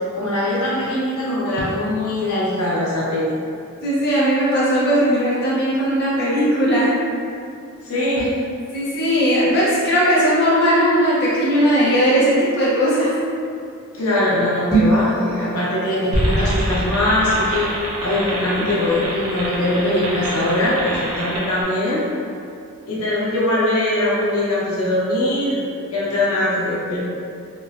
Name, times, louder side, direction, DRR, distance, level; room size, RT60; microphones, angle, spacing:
voice 1, 0.1-3.3 7.8-8.3 13.9-17.7 18.0-22.0 22.9-25.6 25.9-27.0, left 1 dB, 85° left, -8 dB, 0.8 m, -21 dB
voice 2, 3.8-6.9 8.7-13.1, equal, 50° left, -10 dB, 0.6 m, -18 dB
sound 1, 14.6-15.1, right 3 dB, 15° right, 0.9 m, -17 dB
sound 2, 16.1-21.6, equal, 80° right, 0.6 m, -25 dB
3.0 x 2.1 x 2.3 m, 2.4 s
head